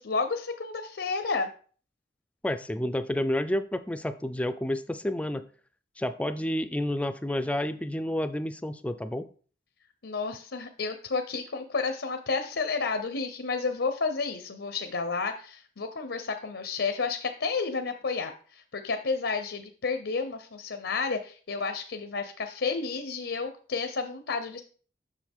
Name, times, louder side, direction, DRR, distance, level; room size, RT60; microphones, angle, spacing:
voice 1, 0.0-1.5 10.0-24.6, left 4 dB, 80° left, 7 dB, 0.7 m, -31 dB
voice 2, 2.4-5.4 6.0-9.3, left 1 dB, 5° left, 10 dB, 0.4 m, -30 dB
7.6 x 6.4 x 3.6 m, 0.42 s
head